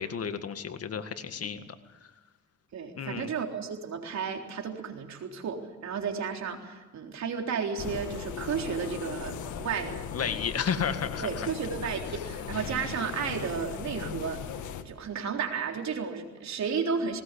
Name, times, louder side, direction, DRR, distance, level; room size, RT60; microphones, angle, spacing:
voice 1, 0.0-1.8 3.0-3.3 10.1-11.5, left 7 dB, 50° left, 9 dB, 1.9 m, -32 dB
voice 2, 2.7-10.0 11.2-14.4 14.8-17.2, right 6 dB, 65° right, 3 dB, 3.8 m, -33 dB
sound 1, 7.8-14.8, left 8 dB, 75° left, 1.8 m, -38 dB
19.5 x 19.0 x 8.4 m, 1.2 s
cardioid pair, 90°, 30 cm